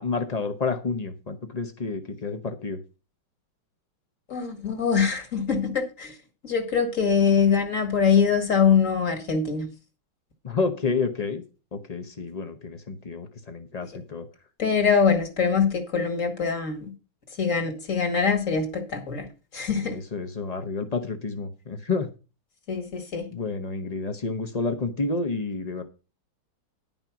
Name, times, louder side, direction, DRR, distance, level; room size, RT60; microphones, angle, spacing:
voice 1, 0.0-2.8 10.4-11.4 11.7-14.3 19.9-22.1 23.3-25.8, left 4 dB, 75° left, 7 dB, 0.3 m, -29 dB
voice 2, 4.3-6.1 6.4-9.7 14.6-16.9 17.4-19.3 19.5-20.0 22.7-23.3, left 6 dB, 40° left, 6 dB, 2.0 m, -23 dB
11.0 x 5.5 x 5.9 m, 0.32 s
omnidirectional pair, 2.3 m